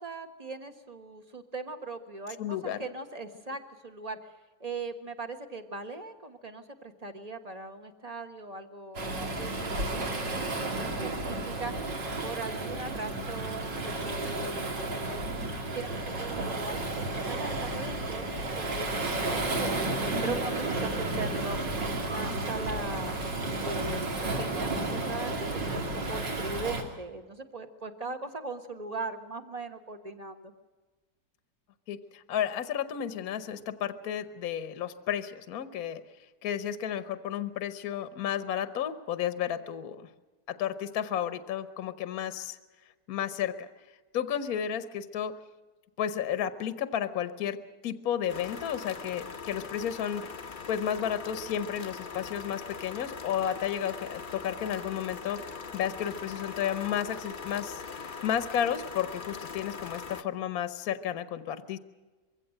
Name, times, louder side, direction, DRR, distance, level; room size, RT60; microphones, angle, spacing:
voice 1, 0.0-4.3 4.6-11.9 12.2-15.2 15.7-23.2 23.6-30.5, right 3 dB, 25° right, 8 dB, 1.3 m, -40 dB
voice 2, 2.4-2.8 31.9-40.1 40.5-42.6 43.1-43.7 44.1-45.3 46.0-47.6 47.8-50.3 50.7-61.8, left 9 dB, 60° left, 12 dB, 1.3 m, -32 dB
Waves surf, 9.0-26.8, right 2 dB, 75° right, 3.3 m, -32 dB
sound 1, 48.3-60.2, left 5 dB, 40° left, 0.8 m, -41 dB
22.5 x 16.0 x 7.7 m, 1.3 s
omnidirectional pair, 2.0 m